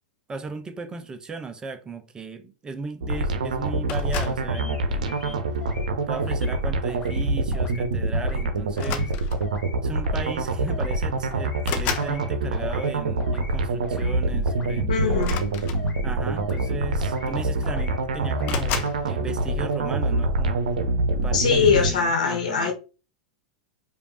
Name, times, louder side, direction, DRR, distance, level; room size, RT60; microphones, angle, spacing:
voice 1, 0.3-5.4 6.1-9.1 9.8-15.3 16.0-20.6 21.2-22.7, right 4 dB, 20° right, 0.7 m, -36 dB
sound 1, 3.0-21.9, right 2 dB, 70° right, 0.7 m, -26 dB
sound 2, 3.9-4.5 5.4-5.7 7.2-7.4 7.7-7.8 8.7-9.6 10.6-10.7 11.0-12.2 15.1-16.2 17.1-17.2 17.5-18.0 18.4-19.0, left 9 dB, 45° left, 0.6 m, -33 dB
sound 3, 4.5-4.8 5.1-5.9 6.1-6.6 6.9-7.2 7.5-7.9 8.1-8.5 8.8-9.1 9.4-9.8 10.0-10.4 10.7-11.0 11.3-11.7 11.9-12.3 12.6-12.9 13.2-13.6 13.8-14.2 14.5-14.8 15.1-15.5 15.7-16.1 16.4-16.7 17.0-17.4 17.6-18.0 18.3-18.6, left 1 dB, 25° left, 1.1 m, -41 dB
voice 2, 14.9-15.4 21.3-22.7, left 6 dB, 70° left, 1.2 m, -22 dB
5.0 x 2.6 x 3.0 m
figure-of-eight pair, 95°, 4 cm